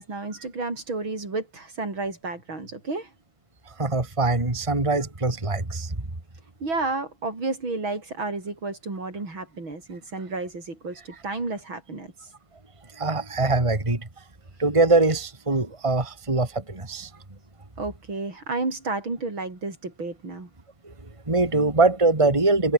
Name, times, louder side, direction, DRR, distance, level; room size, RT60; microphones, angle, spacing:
voice 1, 0.0-3.1 6.6-12.1 17.8-20.5, right 3 dB, 70° right, 6.4 m, -31 dB
voice 2, 3.7-6.0 12.9-14.1 14.6-17.1 20.8-20.9 21.3-22.7, right 3 dB, 15° right, 2.6 m, -22 dB
omnidirectional pair, 2.3 m